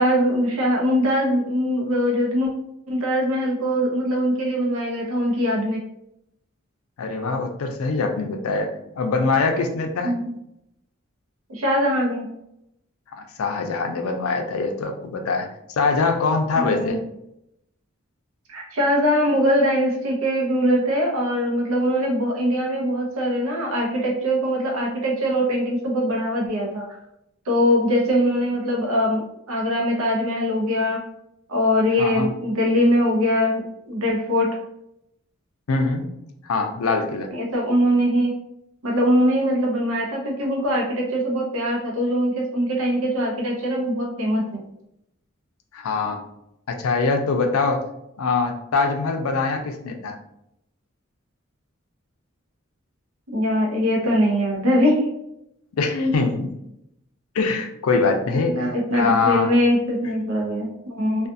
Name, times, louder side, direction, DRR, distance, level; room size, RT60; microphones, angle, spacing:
voice 1, 0.0-2.5 2.9-5.8 10.0-10.4 11.5-12.3 16.5-16.9 18.5-26.9 27.5-31.0 31.5-34.6 37.3-38.3 38.8-44.6 53.3-55.0 58.5-61.3, equal, 90° right, -1 dB, 0.7 m, -22 dB
voice 2, 7.0-8.7 9.0-10.2 13.2-15.5 15.8-17.0 32.0-32.3 35.7-36.0 36.4-37.3 45.7-46.2 46.7-47.9 48.2-50.2 55.7-56.5 57.3-58.6 58.9-59.5, left 4 dB, 90° left, 4 dB, 0.4 m, -23 dB
2.4 x 2.4 x 2.5 m, 0.81 s
head